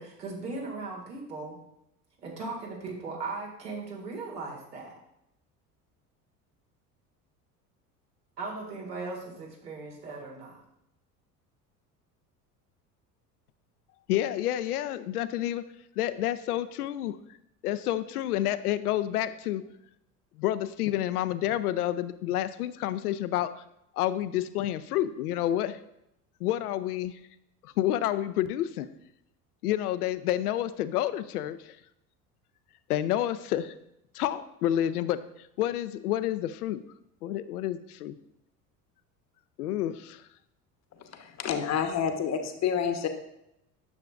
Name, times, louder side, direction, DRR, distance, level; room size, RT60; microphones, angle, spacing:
voice 1, 0.0-1.6 2.2-5.0 8.4-10.6, right 3 dB, 80° right, -2 dB, 2.0 m, -38 dB
voice 2, 14.1-15.6 16.0-17.2 17.6-19.6 20.4-23.5 24.0-25.8 26.4-27.1 27.6-28.9 29.6-31.8 32.9-33.7 34.1-35.2 35.6-36.8 37.2-38.2 39.6-40.2, left 12 dB, 70° left, 12 dB, 0.6 m, -29 dB
voice 3, 41.4-43.1, left 7 dB, 35° left, 7 dB, 0.9 m, -28 dB
9.6 x 6.7 x 2.4 m, 0.80 s
figure-of-eight pair, 65°, 47 cm